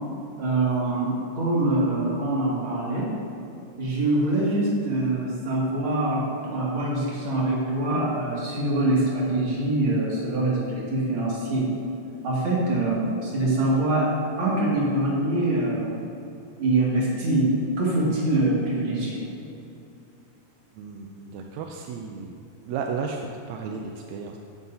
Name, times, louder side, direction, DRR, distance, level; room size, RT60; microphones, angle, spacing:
voice 1, 0.4-3.1 3.8-11.6 12.2-14.1 14.4-16.0 16.6-17.5 17.8-19.2, right 2 dB, 40° right, -6 dB, 3.0 m, -24 dB
voice 2, 20.7-24.4, right 5 dB, 80° right, 2 dB, 1.7 m, -34 dB
14.5 x 9.3 x 2.8 m, 2.7 s
omnidirectional pair, 3.6 m